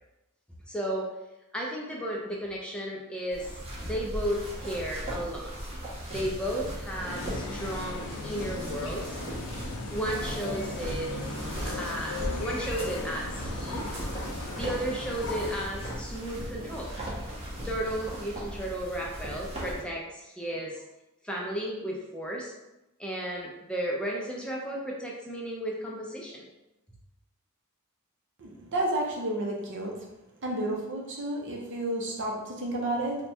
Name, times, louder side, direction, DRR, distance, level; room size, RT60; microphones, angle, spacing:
voice 1, 0.7-1.1 1.5-5.5 6.1-9.2 9.9-11.1 11.7-13.9 14.5-16.9 17.6-20.8 21.2-22.5 23.0-26.5, equal, 5° left, -3 dB, 0.4 m, -34 dB
sound 1, 3.3-19.8, equal, 30° right, 1.0 m, -37 dB
sound 2, 7.1-15.7, left 3 dB, 90° left, 0.5 m, -38 dB
voice 2, 28.4-29.9 30.4-33.2, right 1 dB, 55° right, -1 dB, 0.8 m, -31 dB
3.3 x 2.2 x 4.2 m, 0.95 s
head